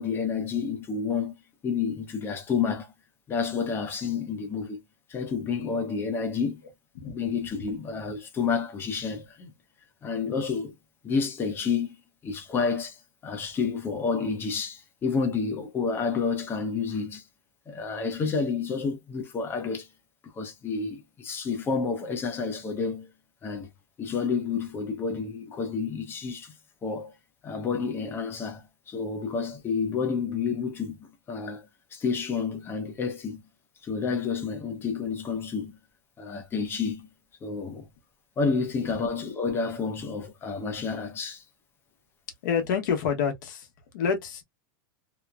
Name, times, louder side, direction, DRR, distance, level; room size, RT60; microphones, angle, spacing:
voice 1, 0.0-1.4 1.6-2.9 3.3-4.8 5.1-6.6 7.0-9.5 10.0-10.7 11.0-12.0 12.2-17.2 17.7-19.9 20.4-23.1 23.4-23.7 24.0-26.5 26.8-27.1 27.4-33.4 33.8-35.8 36.2-37.1 37.4-37.9 38.4-41.4, left 5 dB, 20° left, 0.7 m, -30 dB
voice 2, 42.4-43.7 43.9-44.4, left 6 dB, 65° left, 1.0 m, -27 dB
2.9 x 2.1 x 2.3 m
supercardioid pair, 140°, 11 cm